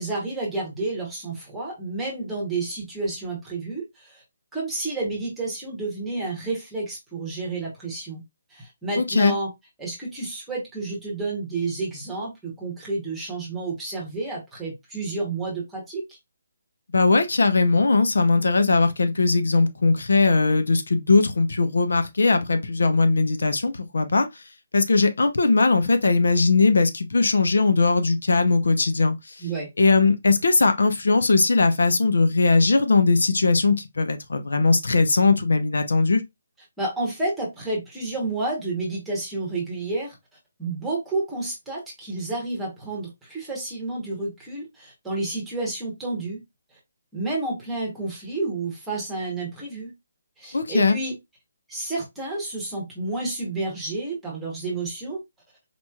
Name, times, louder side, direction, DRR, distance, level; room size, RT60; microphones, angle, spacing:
voice 1, 0.0-4.2 4.5-8.2 8.5-9.5 9.8-16.2 29.4-29.7 36.8-40.2 40.6-46.4 46.7-46.8 47.1-49.9 50.4-51.1 51.7-55.2, right 2 dB, 5° right, 1.0 m, -30 dB
voice 2, 9.0-9.3 16.9-24.3 24.7-29.4 29.8-36.2 50.5-51.0, left 3 dB, 85° left, 0.7 m, -20 dB
4.2 x 3.0 x 2.3 m
hypercardioid pair, 175°, 0 cm